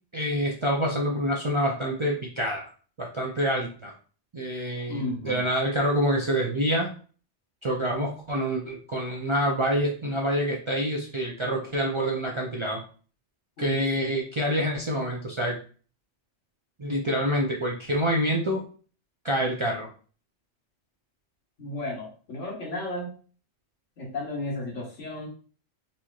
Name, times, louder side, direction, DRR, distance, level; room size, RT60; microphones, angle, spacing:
voice 1, 0.1-2.7 3.0-4.0 4.3-6.9 7.6-12.8 13.6-15.6 16.8-18.6 19.2-19.9, equal, 40° right, -2 dB, 0.4 m, -27 dB
voice 2, 4.9-5.4 13.6-13.7 21.6-23.1 24.0-25.3, left 2 dB, 85° left, -1 dB, 1.5 m, -33 dB
4.1 x 3.0 x 2.3 m, 0.40 s
omnidirectional pair, 1.2 m